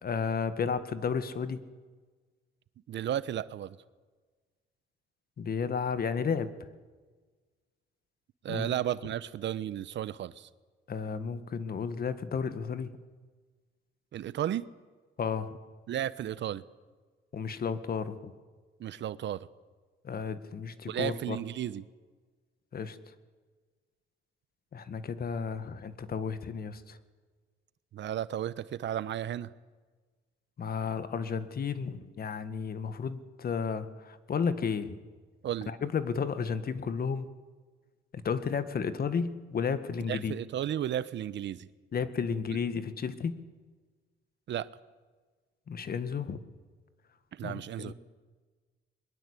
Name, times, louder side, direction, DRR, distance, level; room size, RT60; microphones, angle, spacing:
voice 1, 0.0-1.6 5.4-6.5 8.5-8.7 10.9-12.9 15.2-15.5 17.3-18.3 20.0-21.4 22.7-23.0 24.7-27.0 30.6-35.0 35.7-37.3 38.1-40.4 41.9-43.3 45.7-46.4 47.4-47.9, left 6 dB, 50° left, 12 dB, 1.9 m, -33 dB
voice 2, 2.9-3.8 8.4-10.5 14.1-14.7 15.9-16.6 18.8-19.5 20.9-21.9 27.9-29.5 35.4-35.7 40.1-41.7 44.5-44.7 47.3-47.9, right 11 dB, 65° right, 17 dB, 0.9 m, -33 dB
22.5 x 22.0 x 8.4 m, 1.4 s
cardioid pair, 90°, 20 cm